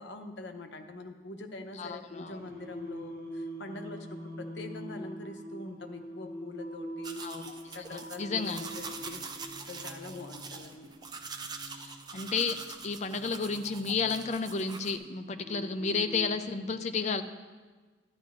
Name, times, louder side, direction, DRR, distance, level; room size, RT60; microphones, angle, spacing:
voice 1, 0.0-7.2 7.7-9.2 9.7-10.9, left 2 dB, 65° left, 4 dB, 0.8 m, -44 dB
voice 2, 1.8-2.4 7.2-8.7 11.8-12.6 12.8-17.2, left 4 dB, 35° left, 8 dB, 0.4 m, -32 dB
Singing, 2.3-16.3, equal, 50° right, 2.1 m, -44 dB
sound 1, 7.0-15.0, right 4 dB, 20° right, 0.5 m, -44 dB
12.0 x 10.5 x 2.6 m, 1.4 s
head